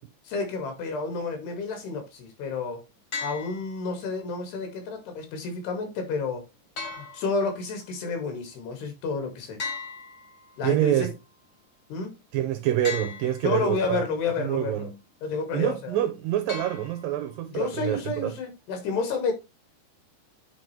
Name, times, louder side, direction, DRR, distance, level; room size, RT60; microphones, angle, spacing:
voice 1, 0.3-2.8 3.2-6.5 7.0-9.6 10.6-11.1 11.9-12.2 13.4-14.9 15.2-16.0 17.5-19.3, left 4 dB, 80° left, 4.3 m, -30 dB
sound 1, 3.1-4.1 6.8-7.8 9.6-10.8 12.8-13.8 16.5-17.4, left 4 dB, 45° left, 1.7 m, -38 dB
voice 2, 10.6-11.1 12.3-14.0 14.4-15.0 15.5-18.3, right 12 dB, 80° right, 2.2 m, -26 dB
9.3 x 4.5 x 3.3 m
omnidirectional pair, 4.7 m